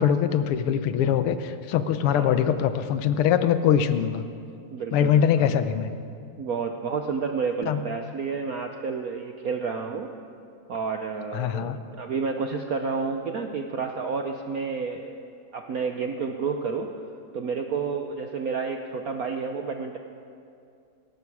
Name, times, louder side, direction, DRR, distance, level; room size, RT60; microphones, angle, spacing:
voice 1, 0.0-4.2 4.9-5.9 7.7-7.8 11.3-11.8, left 9 dB, 85° left, 11 dB, 1.7 m, -23 dB
voice 2, 2.0-2.4 4.7-5.6 6.4-10.1 10.7-15.1 15.5-16.9 17.3-20.0, right 5 dB, 65° right, 4 dB, 0.9 m, -30 dB
18.0 x 16.5 x 4.7 m, 2.5 s
omnidirectional pair, 2.4 m